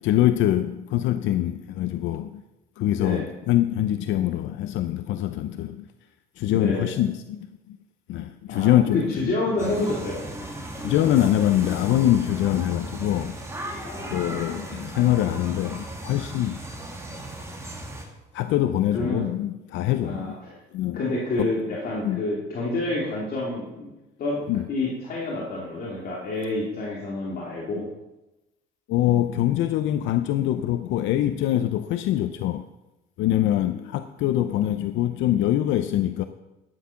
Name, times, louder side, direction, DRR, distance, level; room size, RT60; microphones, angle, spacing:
voice 1, 0.0-2.4 2.8-5.8 6.4-7.8 8.1-9.3 10.8-13.4 14.1-16.6 18.3-20.3 20.7-21.0 21.4-21.5 22.0-22.2 24.5-24.7 28.9-32.7 33.2-36.2, left 12 dB, 75° left, 10 dB, 0.6 m, -24 dB
voice 2, 2.9-3.3 6.5-6.9 8.5-10.2 13.8-14.6 18.9-19.3 20.0-20.6 20.9-23.9 24.2-27.9 33.4-33.9, left 2 dB, 50° left, -4 dB, 2.8 m, -29 dB
sound 1, 9.6-18.0, right 1 dB, 15° right, 2.3 m, -36 dB
12.0 x 9.8 x 5.8 m, 1.0 s
cardioid pair, 135°, 20 cm